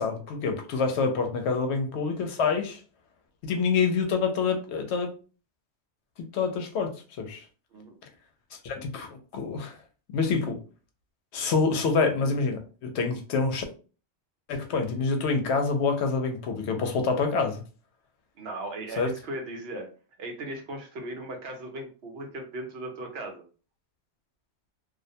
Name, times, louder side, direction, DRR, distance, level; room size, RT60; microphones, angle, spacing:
voice 1, 0.0-2.8 3.4-5.1 6.2-7.4 8.6-9.8 10.1-10.6 11.3-13.6 14.5-17.6 19.0-19.1, left 4 dB, 80° left, 0.8 m, -27 dB
voice 2, 18.4-19.9 20.2-23.4, right 1 dB, 65° right, 0.9 m, -37 dB
2.4 x 2.1 x 2.6 m
omnidirectional pair, 1.1 m